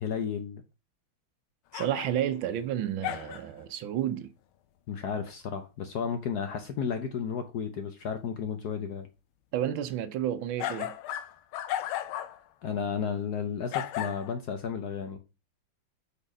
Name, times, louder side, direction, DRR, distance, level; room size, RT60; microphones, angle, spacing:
voice 1, 0.0-0.6 4.9-9.1 12.6-15.2, left 7 dB, 65° left, 1.1 m, -33 dB
sound 1, 1.7-2.5 3.0-3.6 10.6-12.4 13.0-13.1 13.7-14.3, left 12 dB, 80° left, 1.5 m, -35 dB
voice 2, 1.7-4.3 9.5-11.0, right 10 dB, 75° right, 1.3 m, -31 dB
5.4 x 4.2 x 5.2 m
omnidirectional pair, 2.3 m